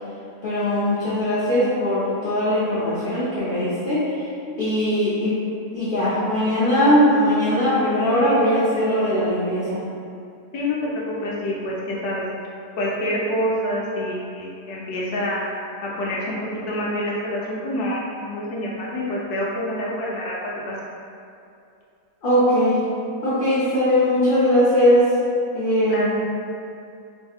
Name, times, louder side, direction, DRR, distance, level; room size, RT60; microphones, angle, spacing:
voice 1, 0.4-4.3 4.6-5.4 5.7-9.8 22.2-22.8 23.2-25.1 25.5-26.1, equal, 60° left, -11 dB, 0.6 m, -20 dB
voice 2, 10.5-10.9 11.2-12.2 12.8-15.4 15.8-16.4 16.7-20.4 20.7-20.8 25.9-26.1, left 1 dB, 85° left, -5 dB, 1.2 m, -27 dB
3.5 x 2.7 x 2.3 m, 2.5 s
omnidirectional pair, 1.6 m